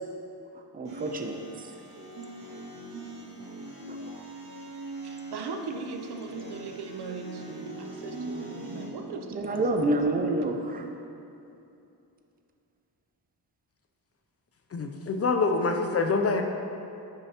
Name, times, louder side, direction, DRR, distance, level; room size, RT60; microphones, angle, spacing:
voice 1, 0.7-1.4 3.9-4.0 9.3-10.8, right 2 dB, 20° right, 4 dB, 0.5 m, -27 dB
sound 1, 0.9-8.9, right 2 dB, 90° right, 1.8 m, -41 dB
voice 2, 5.0-9.9, right 4 dB, 70° right, 4 dB, 0.7 m, -39 dB
voice 3, 14.7-16.4, left 3 dB, 40° left, 5 dB, 0.4 m, -25 dB
9.0 x 6.6 x 2.8 m, 2.7 s
wide cardioid pair, 155°, 41 cm